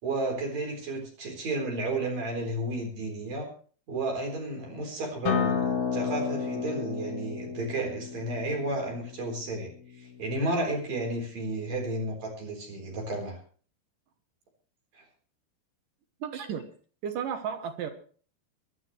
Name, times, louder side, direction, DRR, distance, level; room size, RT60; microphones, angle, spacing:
voice 1, 0.0-3.5 3.9-9.7 10.0-13.4 14.9-15.0, right 2 dB, 45° right, 1 dB, 5.3 m, -32 dB
Acoustic guitar, 5.3-10.5, left 6 dB, 55° left, 2.8 m, -32 dB
voice 2, 16.2-16.7 17.0-17.9, right 7 dB, 70° right, 7 dB, 2.4 m, -33 dB
22.5 x 11.5 x 3.3 m, 0.43 s
omnidirectional pair, 4.6 m